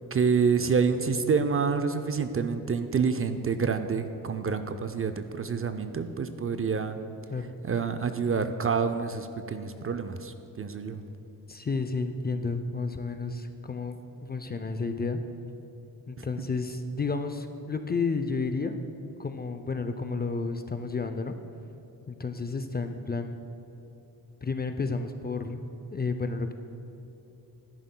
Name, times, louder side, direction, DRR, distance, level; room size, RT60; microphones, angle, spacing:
voice 1, 0.1-7.0 7.6-11.0 16.2-16.3, right 5 dB, 35° right, 9 dB, 0.4 m, -27 dB
voice 2, 11.5-14.0 14.2-15.2 16.1-18.8 19.2-21.3 22.1-23.4 24.4-25.6 25.9-26.5, left 4 dB, 25° left, 8 dB, 0.4 m, -31 dB
10.5 x 10.5 x 2.2 m, 2.9 s
cardioid pair, 60°, 40 cm